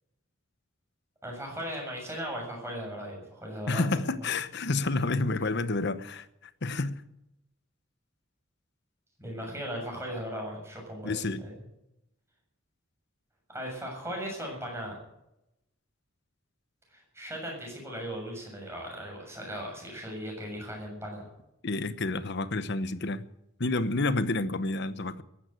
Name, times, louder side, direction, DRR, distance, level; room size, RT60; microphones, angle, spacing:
voice 1, 1.2-4.0 9.2-11.6 13.5-15.0 16.9-21.3, equal, 15° right, 7.1 m, -38 dB
voice 2, 3.7-6.3 6.6-7.0 11.0-11.4 21.6-23.2 23.6-25.2, left 2 dB, 55° left, 1.0 m, -29 dB
15.0 x 11.5 x 8.0 m
head